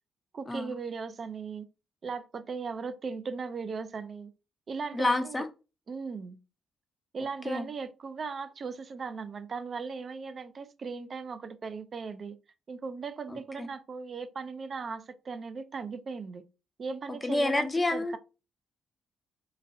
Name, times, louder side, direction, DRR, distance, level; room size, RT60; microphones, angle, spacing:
voice 1, 0.3-1.7 2.0-4.3 4.7-5.4 5.9-6.4 7.1-12.4 12.7-16.4 16.8-18.2, right 5 dB, 45° right, 0.4 m, -38 dB
voice 2, 4.9-5.4 7.4-7.7 13.3-13.7 17.2-18.2, left 2 dB, 20° left, 0.5 m, -29 dB
3.9 x 2.1 x 2.7 m
cardioid pair, 90°, 0 cm